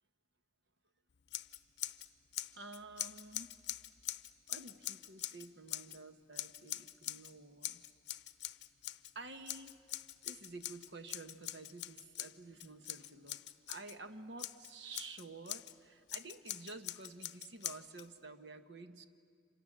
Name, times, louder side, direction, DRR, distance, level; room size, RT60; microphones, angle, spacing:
Scissors, 1.3-2.1 2.3-6.0 6.3-7.3 7.6-9.1 9.5-13.9 14.4-15.7 16.1-18.1, left 14 dB, 70° left, 0.6 m, -44 dB
voice 1, 2.5-3.5 4.5-7.8 9.1-9.8 10.2-19.1, right 3 dB, 75° right, 8 dB, 1.3 m, -51 dB
29.0 x 26.5 x 7.4 m, 2.1 s
head